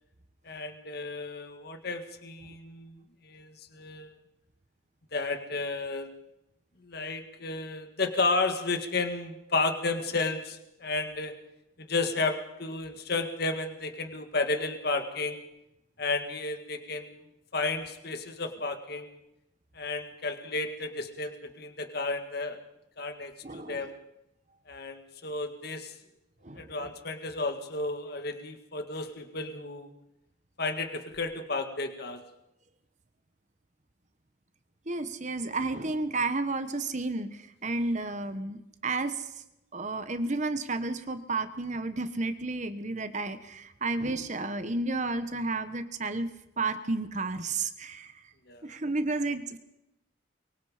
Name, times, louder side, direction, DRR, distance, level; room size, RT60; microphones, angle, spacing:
voice 1, 0.4-4.1 5.1-6.1 6.8-11.4 11.8-15.4 16.0-17.2 17.5-19.2 19.7-22.6 23.0-23.9 24.7-25.9 26.6-29.9 30.6-32.2 48.5-48.7, left 3 dB, 55° left, 7 dB, 1.9 m, -32 dB
voice 2, 23.4-23.8 26.4-26.7 34.9-39.3 39.7-46.3 46.6-48.1 48.6-49.6, right 3 dB, 40° right, 10 dB, 1.2 m, -32 dB
23.5 x 23.5 x 5.1 m, 0.87 s
head